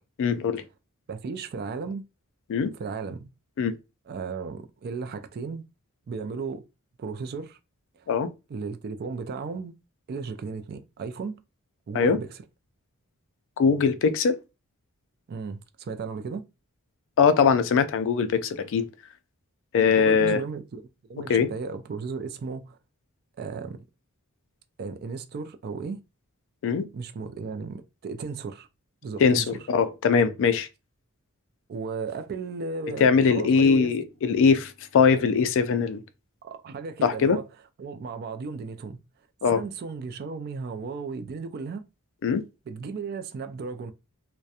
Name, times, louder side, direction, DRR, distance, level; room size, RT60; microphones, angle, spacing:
voice 1, 0.2-0.6 2.5-2.7 3.6-3.7 8.1-8.3 11.9-12.2 13.6-14.4 17.2-18.9 19.7-20.4 21.3-21.5 26.6-26.9 29.2-30.7 33.0-36.0 37.0-37.4 39.4-39.6 42.2-42.4, left 6 dB, 60° left, 0.3 m, -21 dB
voice 2, 1.1-2.0 2.8-3.3 4.1-5.6 6.1-6.6 7.0-7.6 8.5-9.7 10.1-11.4 11.9-12.4 15.3-16.4 20.0-20.8 21.1-22.8 23.4-23.8 24.8-26.0 26.9-28.7 29.0-29.6 31.7-33.9 35.1-35.3 36.4-37.5 37.8-39.0 39.5-41.8 42.7-43.9, right 4 dB, 45° right, 0.3 m, -35 dB
2.7 x 2.1 x 2.3 m
head